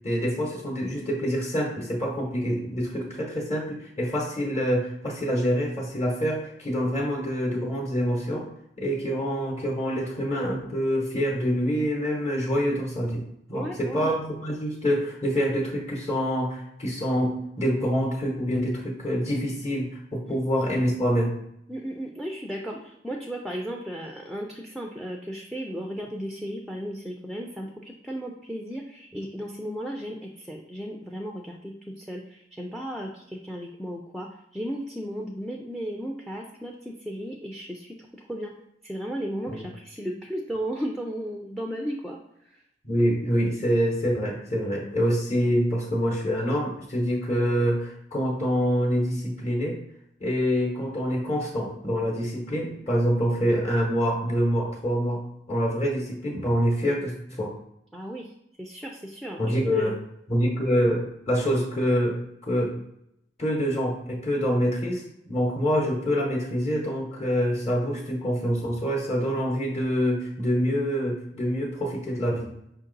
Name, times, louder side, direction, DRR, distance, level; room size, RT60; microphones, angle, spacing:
voice 1, 0.0-8.5 8.8-13.2 13.5-21.3 39.5-39.6 42.8-49.8 50.2-55.2 55.5-57.5 59.4-60.0 60.3-62.8 63.4-72.5, equal, 35° left, -1 dB, 0.9 m, -26 dB
voice 2, 13.5-14.2 20.2-20.4 21.7-38.5 38.8-42.2 42.5-42.6 57.9-58.3 58.6-60.0, equal, ahead, 1 dB, 0.3 m, -35 dB
5.0 x 2.7 x 3.8 m, 0.80 s
head